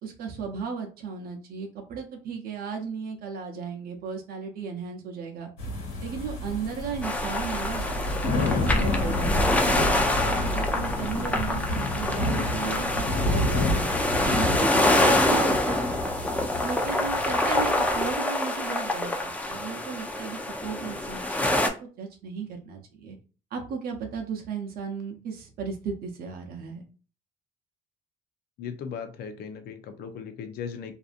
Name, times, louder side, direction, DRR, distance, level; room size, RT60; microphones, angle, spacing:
voice 1, 0.0-5.5 6.0-7.8 8.2-9.9 10.2-13.9 14.2-15.9 16.6-21.5 21.8-23.2 23.5-26.8, right 5 dB, 65° right, 2 dB, 0.7 m, -35 dB
sound 1, 5.6-18.1, left 2 dB, 85° left, 1.5 m, -30 dB
sound 2, 7.0-21.7, left 1 dB, 10° left, 0.5 m, -26 dB
voice 2, 28.6-30.9, left 7 dB, 65° left, 8 dB, 0.6 m, -37 dB
2.7 x 2.4 x 2.5 m, 0.37 s
cardioid pair, 110°, 17 cm